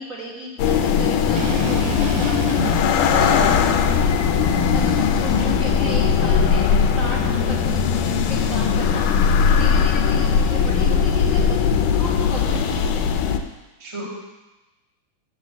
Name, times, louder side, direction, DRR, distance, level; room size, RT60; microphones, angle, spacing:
voice 1, 0.0-2.6 4.7-13.1, equal, 40° right, -6 dB, 1.3 m, -34 dB
sound 1, 0.6-13.4, left 6 dB, 80° left, 2.0 m, -19 dB
sound 2, 1.4-5.5, right 10 dB, 75° right, 1.6 m, -34 dB
voice 2, 3.1-3.5 13.8-14.1, right 1 dB, 20° right, -4 dB, 0.8 m, -28 dB
10.5 x 4.0 x 7.3 m, 1.1 s
omnidirectional pair, 3.6 m